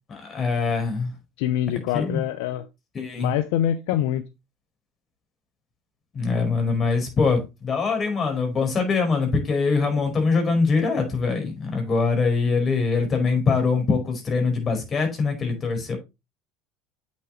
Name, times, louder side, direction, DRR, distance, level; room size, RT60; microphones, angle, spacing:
voice 1, 0.1-1.1 1.9-2.2 2.9-3.3 6.1-16.0, left 4 dB, 35° left, 4.8 m, -23 dB
voice 2, 1.4-2.7 3.2-4.2, left 11 dB, 70° left, 0.6 m, -24 dB
8.1 x 7.1 x 3.1 m
hypercardioid pair, 85°, 0 cm